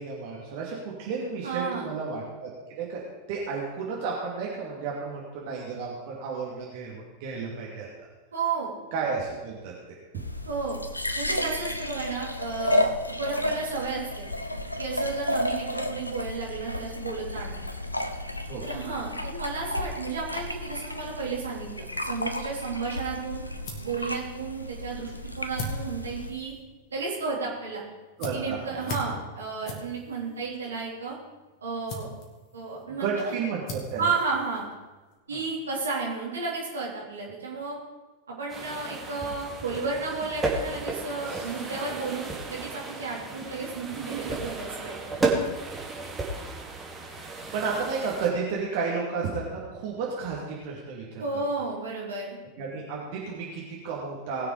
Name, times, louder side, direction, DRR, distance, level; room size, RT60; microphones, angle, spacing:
voice 1, 0.0-2.5 2.8-3.0 3.3-7.9 8.9-10.0 18.4-18.7 28.2-28.9 32.9-34.1 35.3-35.4 41.3-41.5 47.1-51.2 52.6-54.5, right 5 dB, 50° right, -4 dB, 2.6 m, -32 dB
voice 2, 1.4-1.9 8.3-8.7 10.5-10.8 11.2-12.9 13.2-14.3 14.8-17.6 18.6-23.4 23.8-26.5 26.9-27.8 28.3-31.2 31.6-32.1 32.5-33.4 34.0-34.7 35.3-37.8 38.3-45.3 51.2-52.4, right 4 dB, 70° right, -3 dB, 3.5 m, -32 dB
sound 1, 10.2-26.3, left 1 dB, 85° left, 0.8 m, -32 dB
sound 2, 23.1-35.2, equal, 40° left, 2.6 m, -43 dB
sound 3, 38.5-48.3, right 3 dB, 10° right, 2.6 m, -33 dB
20.0 x 6.8 x 5.0 m, 1.2 s
figure-of-eight pair, 90°, 0 cm